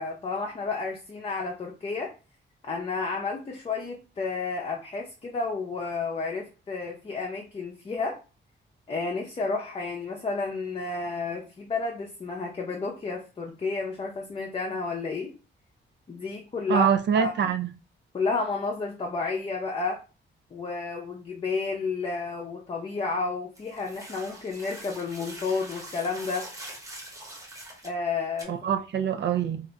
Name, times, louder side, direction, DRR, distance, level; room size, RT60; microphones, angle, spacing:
voice 1, 0.0-2.1 2.6-8.2 8.9-15.3 16.1-16.9 17.2-17.5 18.1-20.0 20.5-26.5 27.8-28.5, left 4 dB, 30° left, 0.5 m, -31 dB
voice 2, 16.7-17.7 28.5-29.6, right 8 dB, 65° right, 0.4 m, -24 dB
sound 1, 23.6-27.9 28.4-28.5, right 1 dB, 15° right, 0.9 m, -43 dB
2.5 x 2.3 x 3.9 m
wide cardioid pair, 140°, 20 cm